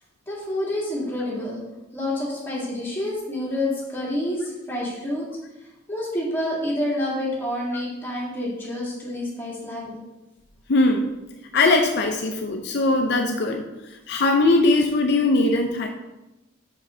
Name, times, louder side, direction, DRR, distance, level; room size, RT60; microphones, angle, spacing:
voice 1, 0.3-1.6 1.9-5.3 5.9-10.0, left 1 dB, 10° left, -6 dB, 2.0 m, -28 dB
voice 2, 10.7-11.1 11.5-13.6 14.1-15.9, left 2 dB, 60° left, 4 dB, 0.5 m, -20 dB
6.0 x 5.4 x 3.7 m, 1.0 s
head